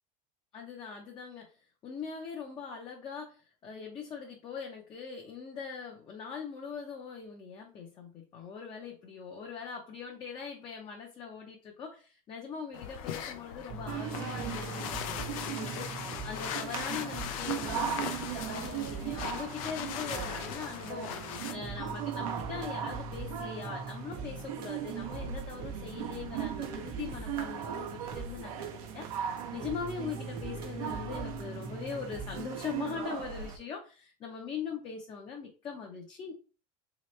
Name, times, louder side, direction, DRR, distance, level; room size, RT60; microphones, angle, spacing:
voice 1, 0.5-1.5 1.8-3.4 3.6-21.2 21.5-28.5 28.9-36.3, left 6 dB, 25° left, 0 dB, 0.6 m, -41 dB
sound 1, 12.7-21.5, left 9 dB, 85° left, 0.5 m, -39 dB
sound 2, 13.7-33.0, right 4 dB, 30° right, 0.8 m, -43 dB
sound 3, 13.9-33.6, right 9 dB, 80° right, 0.8 m, -39 dB
3.3 x 2.9 x 3.1 m, 0.36 s
supercardioid pair, 155°, 17 cm